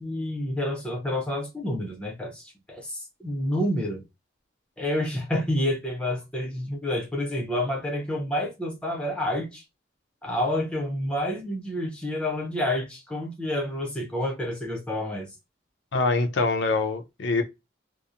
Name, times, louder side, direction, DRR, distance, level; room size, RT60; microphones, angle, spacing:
voice 1, 0.0-4.0 4.8-9.6 10.2-15.3, left 1 dB, 5° left, 0.6 m, -29 dB
voice 2, 15.9-17.4, left 3 dB, 85° left, 0.5 m, -24 dB
2.8 x 2.1 x 2.4 m
head